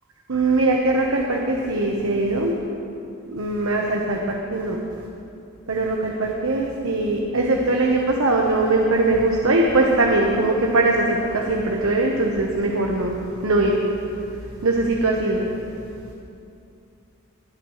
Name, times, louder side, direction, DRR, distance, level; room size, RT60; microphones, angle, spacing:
voice 1, 0.3-2.5 3.3-4.2 4.5-4.8 5.7-13.1 13.4-13.7 14.6-15.5, right 2 dB, 90° right, 0 dB, 1.1 m, -21 dB
19.0 x 11.5 x 3.2 m, 2.6 s
head